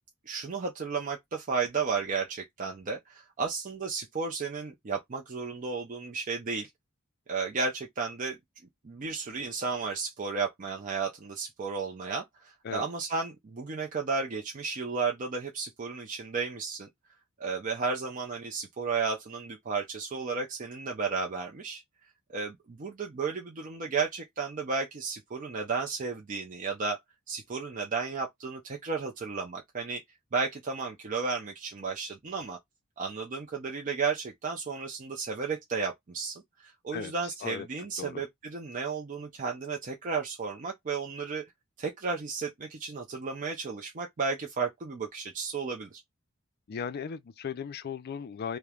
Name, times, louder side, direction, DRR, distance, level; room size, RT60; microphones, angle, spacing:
voice 1, 0.3-6.7 7.3-8.4 8.8-16.9 17.4-21.8 22.3-27.0 27.3-30.0 30.3-32.6 33.0-41.4 41.8-46.0, right 4 dB, 40° right, 0.5 m, -33 dB
voice 2, 46.7-48.6, left 6 dB, 45° left, 0.3 m, -36 dB
3.1 x 2.1 x 2.3 m
head